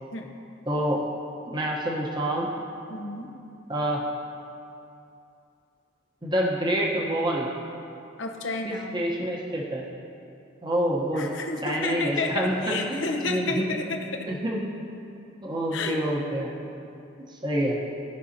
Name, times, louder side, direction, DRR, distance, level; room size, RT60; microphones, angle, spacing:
voice 1, 0.7-1.1 1.5-2.5 3.7-4.0 6.2-7.5 8.6-9.8 10.6-11.3 11.6-13.7 14.3-14.7 15.4-16.7 17.3-17.8, right 1 dB, 25° right, -2 dB, 0.9 m, -27 dB
voice 2, 2.9-3.3 8.2-9.0 11.2-13.9 14.1-14.3 15.7-16.0, left 3 dB, 70° left, 3 dB, 0.9 m, -31 dB
16.0 x 5.5 x 2.8 m, 2.7 s
head